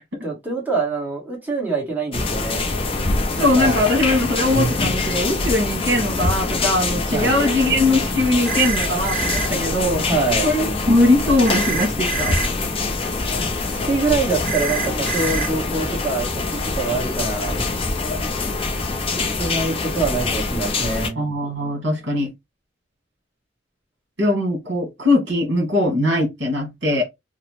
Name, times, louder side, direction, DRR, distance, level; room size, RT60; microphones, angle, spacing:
voice 1, 0.2-2.6 3.4-3.8 7.1-7.3 10.0-10.5 13.7-17.6 19.1-21.2, right 3 dB, 10° right, 1.1 m, -25 dB
sound 1, 2.1-21.1, left 3 dB, 30° left, 0.5 m, -24 dB
voice 2, 3.4-10.0 10.4-12.3 21.2-22.3 24.2-27.0, left 1 dB, 70° right, 1.1 m, -20 dB
sound 2, 8.4-9.5 11.4-12.5 14.4-15.5, right 5 dB, 55° right, 0.5 m, -26 dB
2.9 x 2.0 x 2.9 m
head